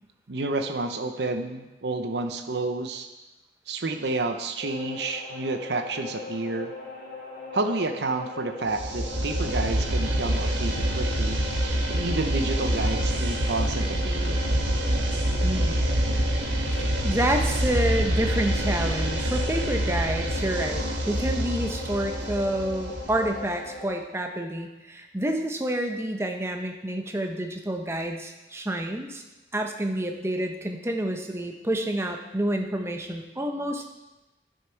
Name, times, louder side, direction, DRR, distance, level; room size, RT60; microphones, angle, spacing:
voice 1, 0.3-3.1 3.7-6.7 7.5-11.4 11.9-14.4, right 2 dB, 70° right, 6 dB, 0.7 m, -30 dB
sound 1, 4.6-24.0, left 3 dB, 55° left, 3.5 m, -40 dB
sound 2, 8.7-23.5, right 1 dB, 90° right, 1.3 m, -26 dB
voice 2, 15.4-15.8 16.8-29.2 29.5-33.8, right 1 dB, 15° right, 4 dB, 0.8 m, -28 dB
11.0 x 6.6 x 4.5 m, 1.0 s
head